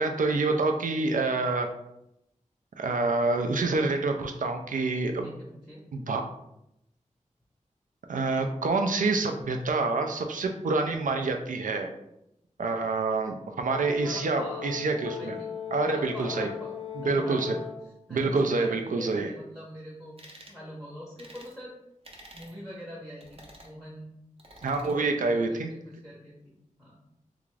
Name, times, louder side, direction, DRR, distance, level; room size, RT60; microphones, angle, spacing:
voice 1, 0.0-1.7 2.8-5.3 5.9-6.2 8.1-11.9 12.6-15.4 15.7-16.5 17.0-17.6 18.1-19.3 24.6-25.7, right 3 dB, 80° right, 5 dB, 0.4 m, -27 dB
voice 2, 5.2-5.8 13.9-14.7 15.2-16.7 17.0-17.4 18.1-20.2 20.5-21.7 22.3-24.1 24.9-26.5 26.8-27.0, left 1 dB, ahead, -6 dB, 0.7 m, -43 dB
Brass instrument, 13.7-17.9, left 9 dB, 45° left, 0.6 m, -38 dB
sound 1, 20.2-20.6 21.2-21.5 22.0-22.6 23.2-23.7 24.4-25.0, right 1 dB, 45° right, 0.7 m, -50 dB
3.5 x 2.5 x 3.1 m, 0.82 s
wide cardioid pair, 100°, 13 cm